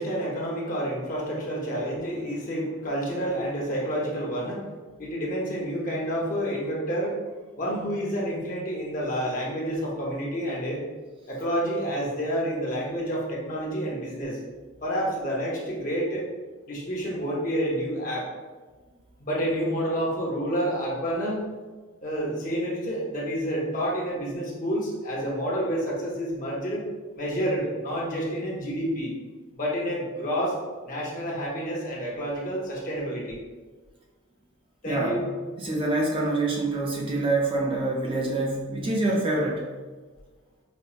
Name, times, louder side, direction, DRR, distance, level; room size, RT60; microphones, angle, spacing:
voice 1, 0.0-7.2 7.6-10.8 11.3-14.4 14.8-16.3 16.7-18.3 19.2-21.4 22.0-26.9 27.1-29.1 29.5-30.6 30.8-33.4 34.8-35.3, equal, 40° left, -3 dB, 0.7 m, -29 dB
voice 2, 34.9-35.3 35.6-39.7, right 2 dB, 25° right, -2 dB, 0.4 m, -26 dB
5.1 x 2.0 x 2.4 m, 1.3 s
head